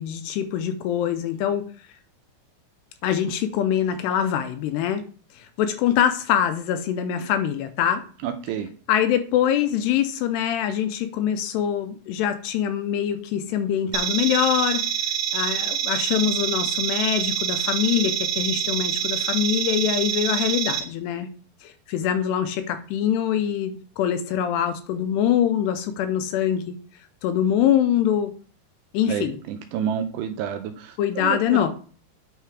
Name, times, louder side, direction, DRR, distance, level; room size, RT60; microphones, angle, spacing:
voice 1, 0.0-1.6 3.0-5.0 5.4-8.0 8.9-14.8 15.3-21.3 21.6-26.8 27.2-28.3 28.9-29.4 31.0-31.7, left 9 dB, 80° left, 8 dB, 2.5 m, -24 dB
voice 2, 8.2-8.7 29.1-31.6, right 9 dB, 80° right, 6 dB, 2.5 m, -29 dB
sound 1, 13.9-20.8, right 9 dB, 60° right, 2.8 m, -26 dB
9.0 x 3.7 x 4.8 m, 0.41 s
omnidirectional pair, 5.2 m